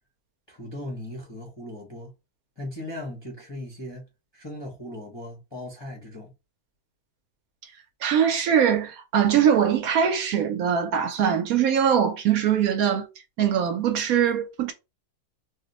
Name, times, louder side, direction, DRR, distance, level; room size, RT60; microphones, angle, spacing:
voice 1, 0.5-2.1 2.6-4.1 4.3-6.3, left 1 dB, 30° left, 0.5 m, -38 dB
voice 2, 8.0-13.1 13.4-14.7, right 8 dB, 70° right, 1.0 m, -22 dB
2.7 x 2.1 x 3.9 m
omnidirectional pair, 1.7 m